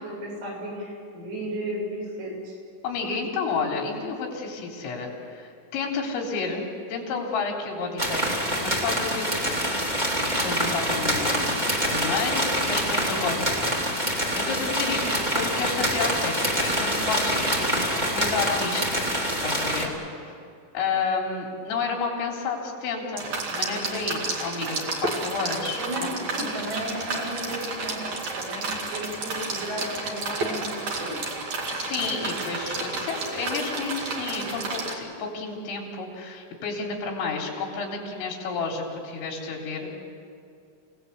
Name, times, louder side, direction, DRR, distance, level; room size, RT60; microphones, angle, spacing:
voice 1, 0.0-2.5 11.4-11.6 25.8-28.1 28.4-30.7 31.0-31.2, equal, 85° right, -3 dB, 9.8 m, -34 dB
voice 2, 2.8-8.2 8.6-9.8 10.1-11.6 11.9-13.7 14.1-19.0 19.4-20.3 20.7-26.1 31.7-40.0, left 4 dB, 75° left, 0 dB, 6.2 m, -31 dB
sound 1, 8.0-19.9, equal, 20° right, 1.2 m, -25 dB
sound 2, 23.2-34.9, right 3 dB, 45° right, 2.9 m, -31 dB
28.5 x 18.5 x 8.2 m, 2.4 s
omnidirectional pair, 6.0 m